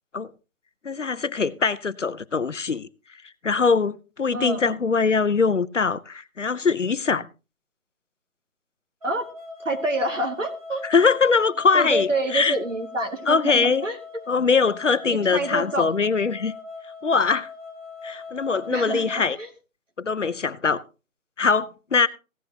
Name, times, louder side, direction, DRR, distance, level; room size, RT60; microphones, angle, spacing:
voice 1, 0.8-2.9 3.4-7.2 10.8-12.6 13.3-13.9 14.3-16.5 17.0-17.5 18.0-19.4 20.0-20.8 21.4-22.1, left 5 dB, 60° left, 0.7 m, -22 dB
voice 2, 4.3-4.7 9.0-9.3 9.6-10.8 11.7-14.0 15.1-16.0 18.7-19.5, right 1 dB, 60° right, 2.6 m, -27 dB
sound 1, 9.0-19.2, left 4 dB, 25° right, 1.2 m, -40 dB
16.0 x 10.5 x 2.9 m
figure-of-eight pair, 160°, 42 cm